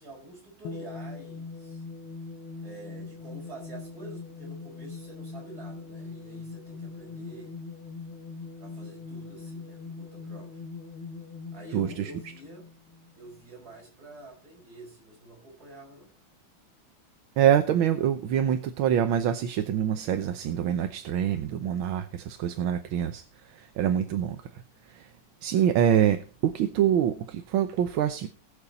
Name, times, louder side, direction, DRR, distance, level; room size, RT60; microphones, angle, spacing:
voice 1, 0.0-1.8 2.6-7.6 8.6-10.7 11.5-12.7 13.1-16.1, right 2 dB, 45° right, 5.4 m, -47 dB
sound 1, 0.6-13.5, left 4 dB, 85° left, 2.1 m, -41 dB
voice 2, 11.7-12.1 17.4-25.1 25.4-28.3, right 9 dB, 75° right, 1.6 m, -25 dB
20.0 x 6.9 x 4.1 m
omnidirectional pair, 2.3 m